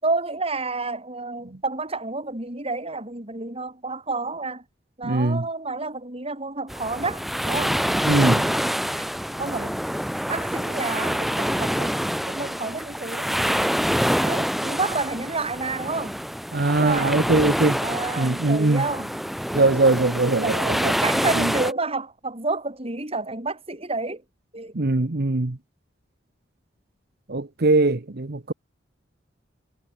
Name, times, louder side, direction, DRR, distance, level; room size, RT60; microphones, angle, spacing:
voice 1, 0.0-4.6 5.0-7.8 8.2-8.6 9.0-9.1 9.4-9.8 10.3-12.0 12.3-13.7 14.2-16.2 16.8-17.2 17.8-19.2 20.4-24.2 24.5-24.7, right 3 dB, 35° right, 5.3 m, -30 dB
voice 2, 5.0-5.4 8.0-8.4 16.5-17.8 18.2-18.8 19.5-20.9 21.4-21.5 24.7-25.6 27.3-28.5, right 2 dB, 60° right, 1.1 m, -21 dB
sound 1, 6.7-21.7, equal, ahead, 0.8 m, -26 dB
head